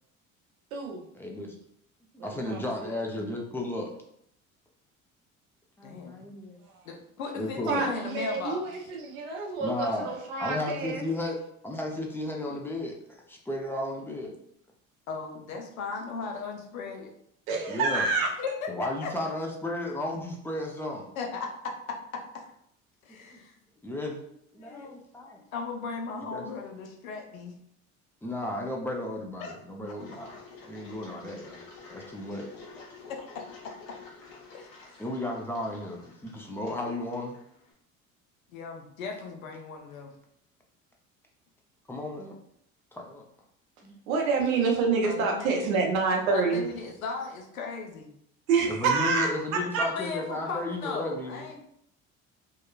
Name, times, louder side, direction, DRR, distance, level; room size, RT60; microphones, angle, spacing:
voice 1, 1.1-1.6 2.1-3.9 5.8-6.6 7.4-7.9 9.6-10.1 10.4-11.4 11.6-14.4 17.7-18.1 18.7-21.1 23.3-23.4 23.8-24.2 24.5-25.5 26.3-26.4 28.2-31.6 31.9-32.5 35.0-37.4 41.9-42.4 42.9-43.3 43.8-44.0 48.7-51.5, left 1 dB, 5° left, 0 dB, 0.5 m, -34 dB
voice 2, 2.2-2.6 7.6-11.0 17.5-18.3 44.1-46.6 48.5-49.9, right 4 dB, 80° right, 1 dB, 0.7 m, -27 dB
voice 3, 5.8-6.2 6.8-8.6 15.1-17.1 18.4-18.7 19.0-19.1 21.2-22.2 23.1-23.5 24.6-24.9 25.5-27.5 29.4-29.5 29.8-29.9 33.1-33.2 34.5-35.0 38.5-40.1 45.0-45.6 46.3-48.1 49.9-51.6, left 4 dB, 90° left, 2 dB, 0.6 m, -37 dB
Engine, 30.0-37.7, left 4 dB, 55° left, 1.1 m, -50 dB
2.8 x 2.2 x 2.3 m, 0.71 s
hypercardioid pair, 65°, 40 cm